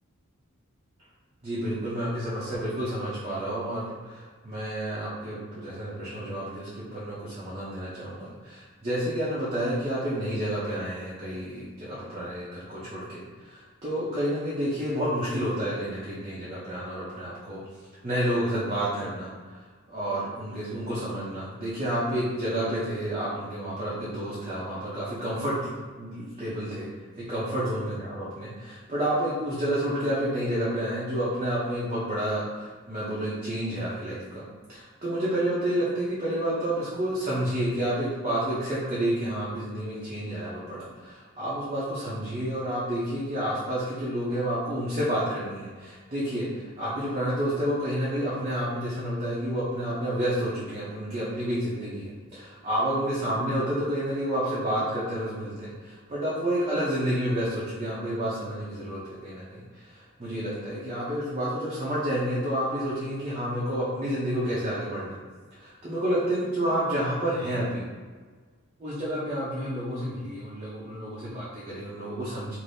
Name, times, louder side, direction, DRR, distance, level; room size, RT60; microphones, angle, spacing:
voice 1, 1.4-17.6 18.0-19.6 19.9-26.9 27.2-34.4 34.7-65.2 65.5-67.8 68.8-72.6, right 1 dB, 30° right, -9 dB, 0.6 m, -30 dB
3.3 x 2.6 x 2.6 m, 1.5 s
head